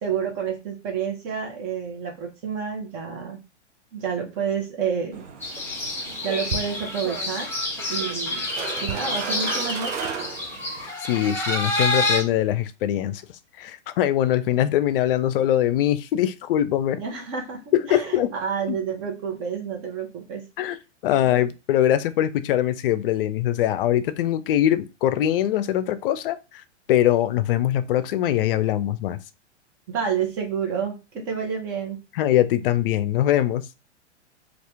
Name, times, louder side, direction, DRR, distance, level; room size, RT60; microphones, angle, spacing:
voice 1, 0.0-3.4 3.9-5.2 6.2-7.5 7.9-8.4 8.8-10.3 17.0-17.6 17.9-20.5 21.1-21.3 29.9-32.0, right 7 dB, 35° right, 1.0 m, -29 dB
sound 1, 5.1-10.9, right 6 dB, 90° right, 0.7 m, -34 dB
sound 2, 5.4-12.2, left 2 dB, 5° left, 0.7 m, -28 dB
voice 2, 11.0-13.2 13.6-17.0 17.7-18.3 18.7-18.8 20.6-20.8 21.0-26.6 26.9-29.2 32.1-33.7, left 12 dB, 50° left, 0.4 m, -22 dB
2.8 x 2.5 x 3.3 m
hypercardioid pair, 115°, 36 cm